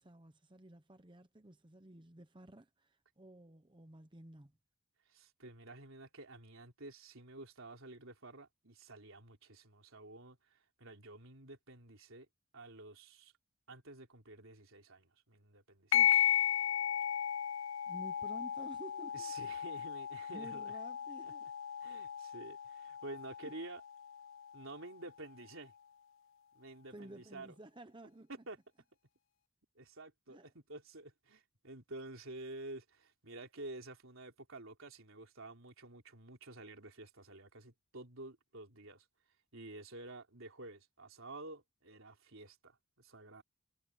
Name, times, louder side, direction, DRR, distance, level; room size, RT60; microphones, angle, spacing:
voice 1, 0.0-4.5 15.9-16.7 17.9-19.3 20.3-21.5 23.4-23.5 26.9-28.3 30.3-30.5, right 1 dB, 20° right, 0.9 m, -53 dB
voice 2, 5.1-12.3 12.5-13.3 13.7-16.0 19.1-20.7 21.2-21.3 21.8-23.8 24.5-25.7 26.5-27.6 28.3-28.6 29.8-39.1 39.5-43.4, right 2 dB, 70° right, 3.7 m, -50 dB
sound 1, 15.9-24.9, left 10 dB, 65° left, 0.4 m, -35 dB
head